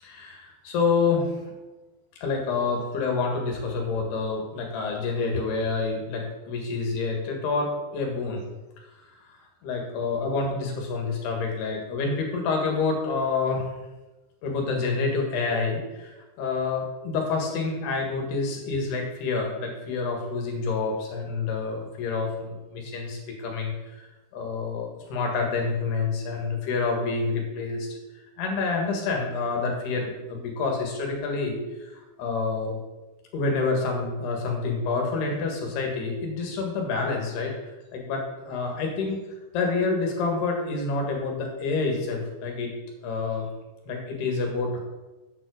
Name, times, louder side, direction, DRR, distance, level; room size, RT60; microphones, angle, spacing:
voice 1, 0.0-1.3 2.2-8.5 9.6-13.6 14.4-24.1 24.3-27.9 28.4-32.8 33.3-37.6 37.9-39.2 39.5-42.7 43.0-43.5 43.9-44.8, left 4 dB, 80° left, 1 dB, 3.8 m, -28 dB
7.7 x 7.3 x 6.3 m, 1.1 s
omnidirectional pair, 4.6 m